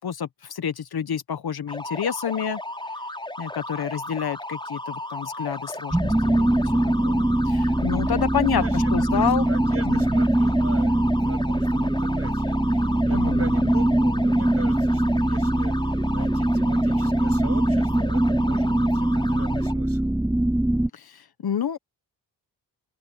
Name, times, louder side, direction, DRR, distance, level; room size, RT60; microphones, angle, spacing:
voice 1, 0.0-2.6 3.4-6.7 7.0-9.5 9.8-10.0 13.1-13.7 20.9-21.8, left 8 dB, 60° left, 1.4 m, -29 dB
sound 1, 1.7-19.7, left 1 dB, 10° left, 4.9 m, -35 dB
sound 2, 5.9-20.9, right 1 dB, 5° right, 0.4 m, -22 dB
voice 2, 8.5-20.1, right 4 dB, 35° right, 7.5 m, -39 dB
open air
cardioid pair, 75°, 43 cm